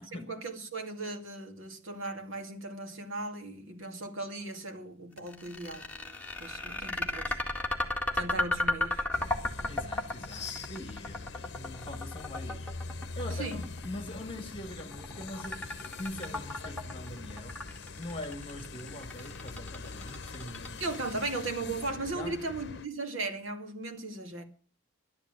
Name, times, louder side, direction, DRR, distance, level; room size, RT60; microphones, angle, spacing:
voice 1, 0.1-7.4 8.1-9.1 13.4-13.6 20.8-24.4, right 2 dB, 70° right, 2.4 m, -37 dB
sound 1, 5.2-21.3, left 2 dB, 5° left, 1.9 m, -34 dB
sound 2, 9.1-22.9, left 3 dB, 55° left, 0.9 m, -43 dB
voice 2, 9.7-21.1 22.1-22.5, left 1 dB, 25° left, 1.9 m, -43 dB
12.0 x 11.0 x 7.7 m
head